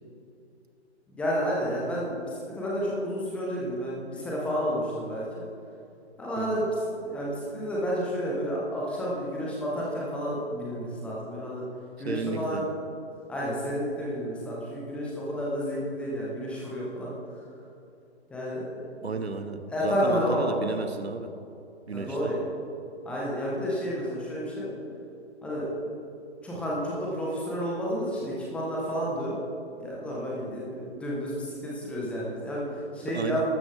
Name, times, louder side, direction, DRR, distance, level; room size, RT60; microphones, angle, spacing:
voice 1, 1.1-5.4 6.2-11.6 12.0-12.6 13.3-17.1 18.3-18.7 19.7-20.5 21.9-22.4 23.0-24.8 25.4-25.7 26.4-29.3 29.8-33.4, equal, 5° left, -5 dB, 1.3 m, -31 dB
voice 2, 12.0-12.6 19.0-21.3 21.9-22.3 33.1-33.4, right 4 dB, 65° right, 8 dB, 1.1 m, -33 dB
13.5 x 13.0 x 3.6 m, 2.6 s
figure-of-eight pair, 145°, 34 cm